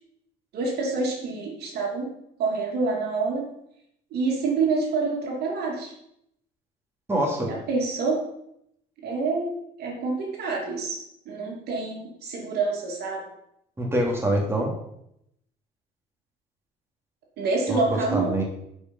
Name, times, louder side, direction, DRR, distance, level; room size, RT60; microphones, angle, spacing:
voice 1, 0.5-2.1 2.4-3.4 4.1-5.9 7.5-8.2 9.0-9.5 9.8-11.0 11.2-13.3 17.4-18.4, right 3 dB, 70° right, -1 dB, 3.0 m, -27 dB
voice 2, 7.1-7.5 13.8-14.7 17.7-17.8 18.1-18.4, right 1 dB, 15° right, -1 dB, 2.9 m, -24 dB
11.0 x 5.5 x 5.5 m, 0.75 s
cardioid pair, 110°, 17 cm